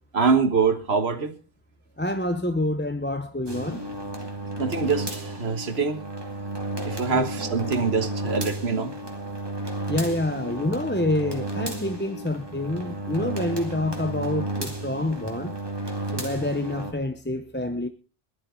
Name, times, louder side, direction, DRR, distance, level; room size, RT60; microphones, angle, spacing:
voice 1, 0.1-1.4 4.6-6.0 6.9-8.9, right 5 dB, 85° right, 1.8 m, -24 dB
voice 2, 2.0-3.9 7.1-7.3 9.9-15.6 16.1-17.9, left 1 dB, 10° left, 0.8 m, -27 dB
sound 1, 3.5-16.9, right 1 dB, 25° right, 2.3 m, -33 dB
19.0 x 12.0 x 3.8 m
omnidirectional pair, 1.0 m